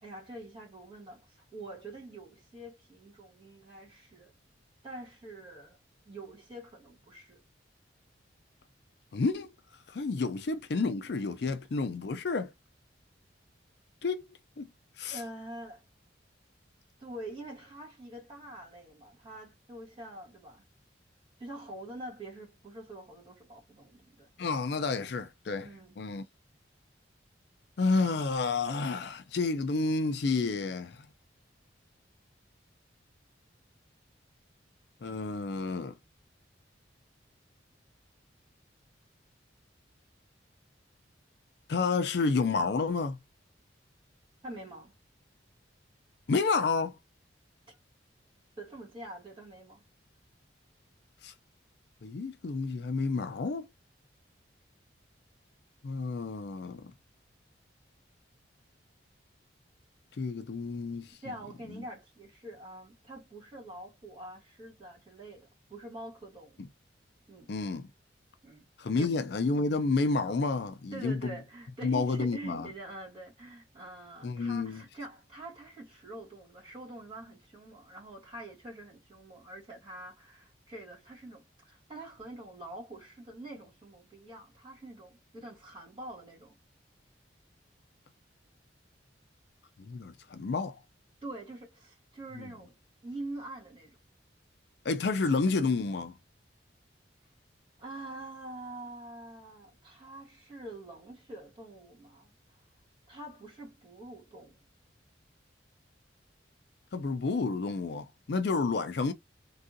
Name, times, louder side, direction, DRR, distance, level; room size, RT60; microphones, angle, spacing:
voice 1, 0.0-4.3 4.8-5.8 6.0-7.4 10.1-10.4 15.1-15.9 17.0-20.6 21.4-24.3 25.6-26.0 44.4-44.9 47.7-47.8 48.6-49.8 61.2-66.6 67.3-67.5 68.4-68.7 69.0-69.2 70.9-86.6 91.2-92.7 93.0-94.0 97.8-102.3 103.1-104.7, right 1 dB, 25° right, 2.1 m, -45 dB
voice 2, 9.1-9.5 9.9-12.5 14.0-14.3 14.6-14.7 15.0-15.2 24.4-25.7 26.0-26.2 27.8-31.1 35.0-35.9 41.7-43.2 46.3-47.0 51.2-51.3 52.0-53.7 55.8-56.9 60.2-61.2 67.5-67.9 68.8-71.4 71.8-72.7 74.2-74.8 89.8-90.8 92.4-92.5 94.8-96.1 106.9-109.1, left 4 dB, 60° left, 0.4 m, -30 dB
3.5 x 2.3 x 2.6 m
head